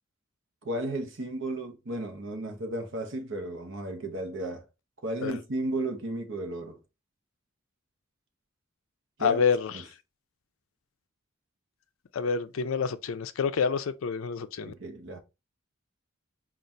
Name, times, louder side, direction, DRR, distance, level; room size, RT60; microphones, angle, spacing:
voice 1, 0.6-4.6 5.0-6.8 9.2-9.4 9.7-9.8 14.6-15.2, right 1 dB, 60° right, 0.9 m, -34 dB
voice 2, 9.2-9.7 12.1-14.7, left 6 dB, 70° left, 0.4 m, -27 dB
3.9 x 2.4 x 4.2 m
head